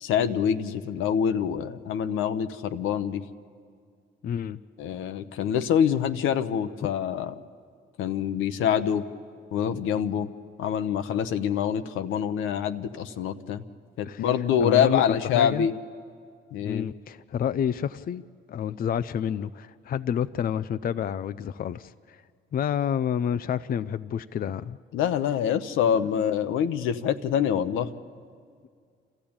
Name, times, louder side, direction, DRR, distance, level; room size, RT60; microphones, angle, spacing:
voice 1, 0.0-3.2 4.8-7.3 8.0-9.0 9.5-10.3 10.6-13.6 14.0-15.7 16.5-16.9 24.9-27.9, left 8 dB, 85° left, 10 dB, 0.9 m, -25 dB
voice 2, 4.2-4.6 14.0-14.3 14.6-15.7 16.6-18.2 18.5-22.2 22.5-24.8, left 8 dB, 45° left, 13 dB, 0.5 m, -29 dB
28.0 x 14.0 x 8.8 m, 2.2 s
cardioid pair, 90°, 20 cm